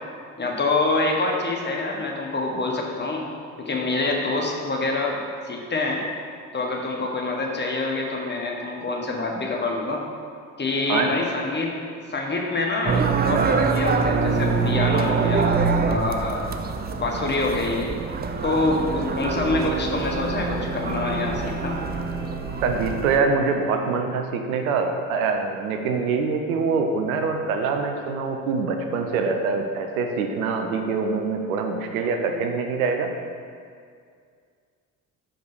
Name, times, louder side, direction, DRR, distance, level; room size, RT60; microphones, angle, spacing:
voice 1, 0.4-3.3 3.6-5.2 5.4-6.0 6.5-10.0 10.6-11.7 12.1-13.4 13.7-15.6 15.8-16.4 17.0-17.9 18.4-21.8, left 2 dB, 25° left, -1 dB, 1.4 m, -26 dB
sound 1, 12.9-23.2, right 5 dB, 25° right, 0.5 m, -25 dB
Happy Pad Chord, 18.4-24.1, right 4 dB, 5° right, 1.5 m, -36 dB
voice 2, 22.6-33.1, right 4 dB, 75° right, 4 dB, 0.8 m, -24 dB
6.1 x 5.1 x 6.0 m, 2.2 s
figure-of-eight pair, 55°, 43 cm